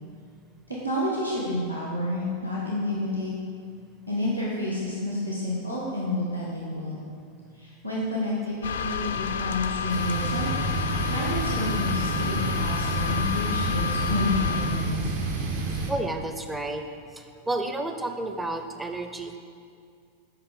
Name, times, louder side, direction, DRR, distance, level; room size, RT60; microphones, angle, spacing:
voice 1, 0.7-3.3 4.1-7.0 7.5-10.5 11.0-15.1, left 1 dB, 90° right, -6 dB, 1.1 m, -29 dB
sound 1, 8.6-14.9, left 7 dB, 65° left, 0.4 m, -30 dB
sound 2, 9.9-15.9, right 3 dB, 55° right, 0.9 m, -30 dB
voice 2, 15.9-16.8 17.5-19.4, right 2 dB, 10° right, 6 dB, 0.5 m, -30 dB
8.0 x 5.6 x 3.9 m, 2.3 s
figure-of-eight pair, 90°, 0 cm